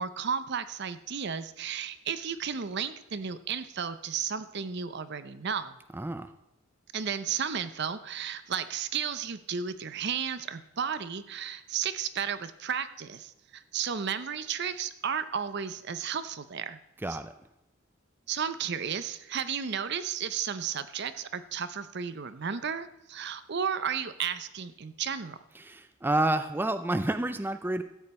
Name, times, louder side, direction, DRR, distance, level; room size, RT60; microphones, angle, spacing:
voice 1, 0.0-5.8 6.9-16.8 17.1-17.2 18.3-25.4, right 7 dB, 55° right, 12 dB, 0.6 m, -33 dB
voice 2, 5.9-6.3 17.0-17.3 25.5-27.8, right 1 dB, 10° right, 10 dB, 0.4 m, -29 dB
13.5 x 8.8 x 4.3 m, 0.91 s
head